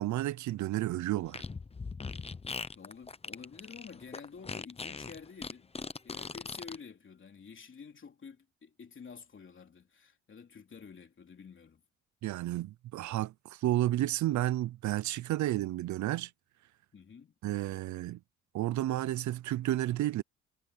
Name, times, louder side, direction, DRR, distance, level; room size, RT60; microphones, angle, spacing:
voice 1, 0.0-1.4 12.2-16.3 17.4-18.2 18.5-20.2, right 14 dB, 70° right, 0.6 m, -31 dB
Fart, 1.2-6.8, left 4 dB, 20° left, 0.9 m, -40 dB
voice 2, 2.7-5.7 6.0-11.8 16.9-17.3, left 6 dB, 40° left, 3.4 m, -50 dB
cardioid pair, 90°, 30 cm